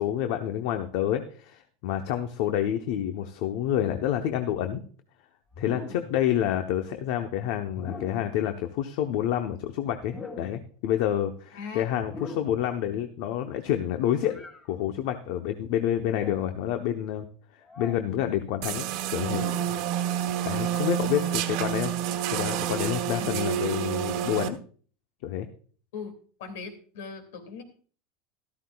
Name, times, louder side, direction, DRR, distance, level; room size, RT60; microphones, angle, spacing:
voice 1, 0.0-4.8 5.6-17.3 17.8-18.8 19.1-19.5 20.4-21.9 22.3-24.6 25.2-25.5, left 11 dB, 65° left, 7 dB, 0.8 m, -28 dB
sound 1, 5.5-6.2 7.7-8.4 10.0-10.7 12.0-12.7 14.3-14.6 16.0-16.5 17.7-18.0 19.1-19.8, left 3 dB, 25° left, 2.7 m, -41 dB
voice 2, 11.5-11.8 21.1-21.3 23.1-24.1 25.9-26.1 26.4-27.6, left 4 dB, 85° left, 7 dB, 2.3 m, -40 dB
sound 2, 18.6-24.5, right 10 dB, 60° right, 1.0 m, -29 dB
13.5 x 13.0 x 2.3 m, 0.43 s
supercardioid pair, 145°, 0 cm